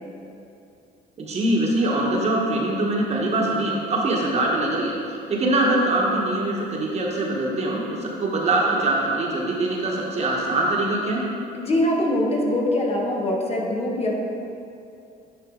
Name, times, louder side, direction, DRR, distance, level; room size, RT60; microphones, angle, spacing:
voice 1, 1.2-4.9 5.3-11.2, right 2 dB, 40° right, -2 dB, 1.3 m, -23 dB
voice 2, 11.5-14.1, left 1 dB, 35° left, -1 dB, 1.1 m, -23 dB
10.0 x 4.4 x 3.8 m, 2.6 s
cardioid pair, 110°, 17 cm